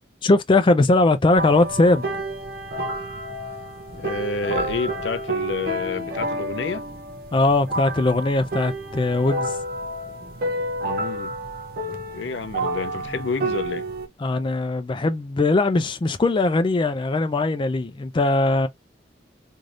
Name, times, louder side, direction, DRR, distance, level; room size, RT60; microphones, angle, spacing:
voice 1, 0.2-2.0 7.3-9.6 14.2-18.7, left 2 dB, 30° left, 0.4 m, -20 dB
sound 1, 1.4-14.1, right 1 dB, 55° right, 0.6 m, -30 dB
voice 2, 4.0-6.8 10.8-11.4 12.1-13.9, left 4 dB, 80° left, 0.5 m, -29 dB
3.3 x 2.6 x 2.4 m
head